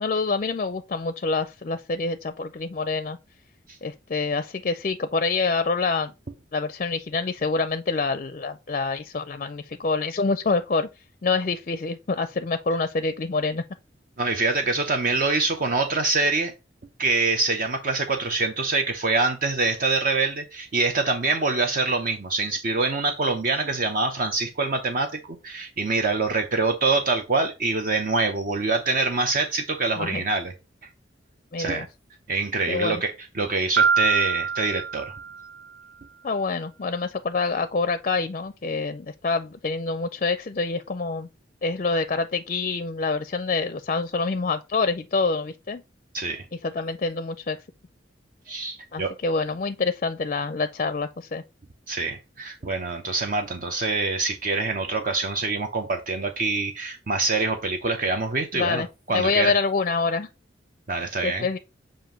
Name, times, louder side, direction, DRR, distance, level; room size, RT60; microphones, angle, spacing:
voice 1, 0.0-3.2 3.8-6.1 6.5-10.9 11.2-13.6 30.0-30.2 31.5-31.9 32.7-33.0 36.2-41.3 41.6-45.8 46.6-47.6 48.9-51.4 58.5-60.3 61.2-61.6, left 4 dB, 40° left, 0.4 m, -26 dB
voice 2, 14.2-16.5 17.0-30.5 31.6-31.9 32.3-35.1 46.1-46.4 48.5-49.1 51.9-59.6 60.9-61.5, right 3 dB, 50° right, 0.7 m, -25 dB
Piano, 33.8-35.7, right 6 dB, 85° right, 0.6 m, -24 dB
7.5 x 2.6 x 5.1 m
head